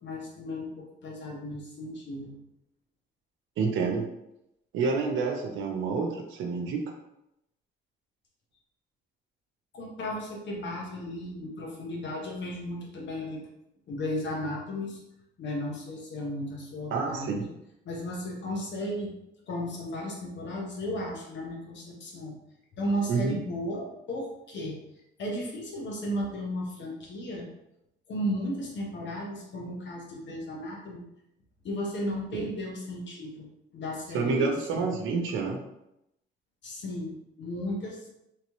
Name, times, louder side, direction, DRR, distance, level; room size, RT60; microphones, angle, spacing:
voice 1, 0.0-2.4 9.7-13.5 13.9-15.0 15.4-17.5 17.8-19.1 19.5-22.4 22.8-24.7 25.2-27.5 28.1-31.0 31.6-33.5 33.7-34.9 36.6-38.1, left 1 dB, 65° left, -1 dB, 1.1 m, -35 dB
voice 2, 3.6-4.1 4.7-6.8 16.9-17.4 23.1-23.4 32.3-32.5 34.1-35.6, right 4 dB, 80° right, 1 dB, 0.6 m, -28 dB
3.2 x 2.9 x 3.0 m, 0.84 s
cardioid pair, 90°, 20 cm